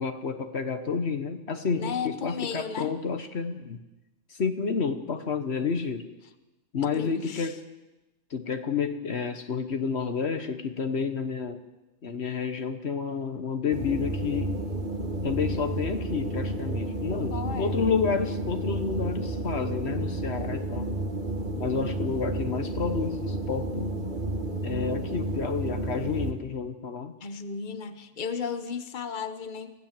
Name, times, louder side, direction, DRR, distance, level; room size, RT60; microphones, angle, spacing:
voice 1, 0.0-3.8 4.3-6.1 6.7-7.6 8.3-11.6 12.0-14.6 15.2-20.9 21.6-23.9 24.6-27.2, left 5 dB, 65° left, 8 dB, 1.4 m, -30 dB
voice 2, 1.8-2.9 6.8-7.5 17.3-17.8 27.2-29.7, left 6 dB, 45° left, 10 dB, 1.3 m, -34 dB
sound 1, 13.7-26.3, right 2 dB, 40° right, 2.1 m, -31 dB
25.0 x 16.5 x 7.6 m, 1.0 s
omnidirectional pair, 1.2 m